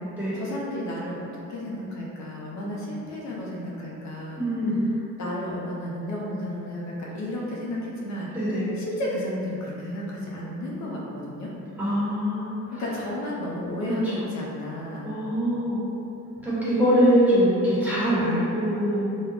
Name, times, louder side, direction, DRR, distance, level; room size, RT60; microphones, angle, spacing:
voice 1, 0.3-1.2 1.5-4.5 5.2-8.3 8.8-11.5 12.8-15.1, left 1 dB, 65° left, -4 dB, 0.5 m, -32 dB
voice 2, 4.4-4.8 8.3-8.7 11.8-12.8 13.9-14.2 15.0-15.8 16.4-19.0, equal, 5° right, -11 dB, 1.1 m, -23 dB
2.4 x 2.1 x 3.4 m, 2.8 s
cardioid pair, 90°, 30 cm